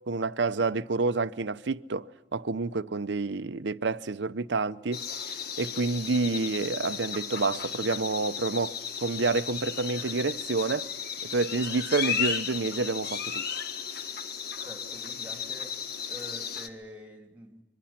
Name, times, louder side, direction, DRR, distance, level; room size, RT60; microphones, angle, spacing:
voice 1, 0.1-5.0 5.6-10.9 11.3-13.5, right 3 dB, 60° right, 0.7 m, -29 dB
sound 1, 4.9-16.7, left 7 dB, 55° left, 1.7 m, -35 dB
voice 2, 14.6-15.8 16.1-17.6, left 1 dB, 10° right, 3.0 m, -46 dB
25.5 x 23.5 x 5.9 m
head